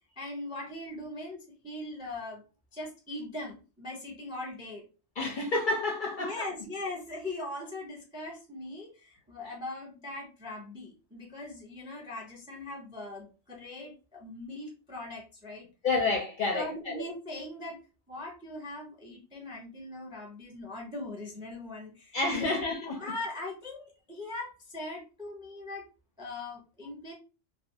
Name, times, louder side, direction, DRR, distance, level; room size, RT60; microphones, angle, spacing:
voice 1, 0.1-2.4 2.7-4.8 6.2-15.7 16.5-17.8 18.1-22.6 23.0-25.8 26.2-27.1, left 2 dB, 10° right, 0.3 m, -40 dB
voice 2, 5.2-6.4 15.8-17.0 22.1-23.0, left 3 dB, 55° left, 0.6 m, -29 dB
2.4 x 2.2 x 2.7 m
omnidirectional pair, 1.2 m